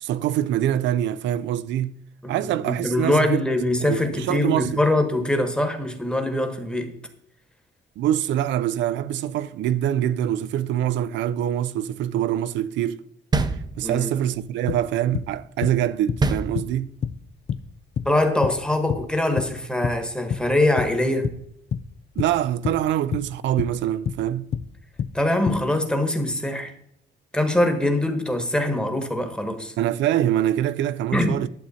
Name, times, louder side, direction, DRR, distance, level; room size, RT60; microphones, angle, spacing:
voice 1, 0.0-1.9 2.3-3.4 3.8-4.7 8.0-13.0 13.8-16.9 22.2-24.5 29.8-31.5, right 11 dB, 80° right, 0.5 m, -24 dB
voice 2, 2.2-6.9 13.8-14.1 18.0-21.3 25.1-26.7 27.3-29.7 31.1-31.4, left 1 dB, 5° left, 1.2 m, -23 dB
sound 1, 13.3-14.2 16.2-17.1, right 3 dB, 20° right, 0.6 m, -25 dB
sound 2, 14.3-14.4 14.7-15.4 15.6-16.3 16.6-16.8 17.0-17.2 17.5-18.2 18.4-19.6 19.8-20.5 20.8-21.4 21.7-21.9 22.2-22.9 23.1-23.8 24.1-24.3 24.5-24.7 25.0-25.6, left 7 dB, 35° left, 0.4 m, -29 dB
11.5 x 7.6 x 4.2 m
cardioid pair, 165°, 19 cm